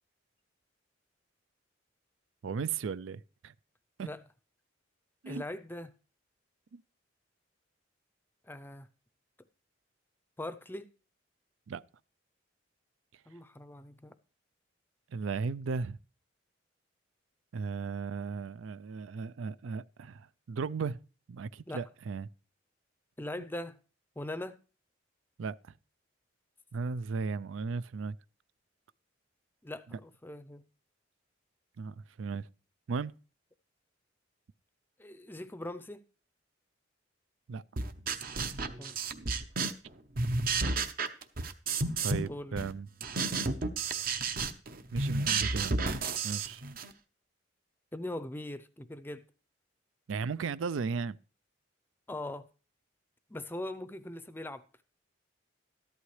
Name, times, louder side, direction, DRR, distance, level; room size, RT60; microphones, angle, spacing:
voice 1, 2.4-3.5 4.0-4.1 5.2-5.4 6.7-6.8 11.7-11.8 15.1-16.0 17.5-21.0 21.3-22.3 25.4-25.6 26.7-28.2 29.9-30.0 31.8-32.5 32.9-33.1 37.5-37.6 42.0-42.9 44.9-45.7 46.2-46.6 50.1-51.2, right 5 dB, 90° right, 0.4 m, -35 dB
voice 2, 5.3-6.0 8.4-8.9 10.4-10.9 13.3-14.2 21.7-21.9 23.2-23.8 24.2-24.6 29.6-30.7 35.0-36.0 38.8-39.0 42.1-42.5 47.9-49.3 52.1-52.5 53.3-54.8, left 1 dB, 10° left, 0.5 m, -41 dB
sound 1, 37.8-39.9 40.1-42.3 42.6-46.9, right 3 dB, 50° right, 0.8 m, -32 dB
13.5 x 11.5 x 3.2 m
head